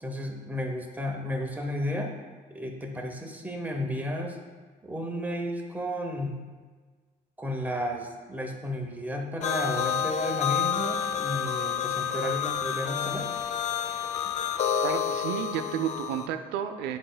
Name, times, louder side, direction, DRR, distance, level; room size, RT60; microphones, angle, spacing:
voice 1, 0.0-2.1 2.5-4.4 4.8-6.4 7.4-13.3, equal, 10° right, 2 dB, 0.8 m, -33 dB
sound 1, 9.4-16.3, left 8 dB, 45° left, 0.4 m, -29 dB
voice 2, 14.8-17.0, right 9 dB, 85° right, 7 dB, 0.4 m, -31 dB
9.9 x 5.0 x 2.2 m, 1.4 s
cardioid pair, 110°, 17 cm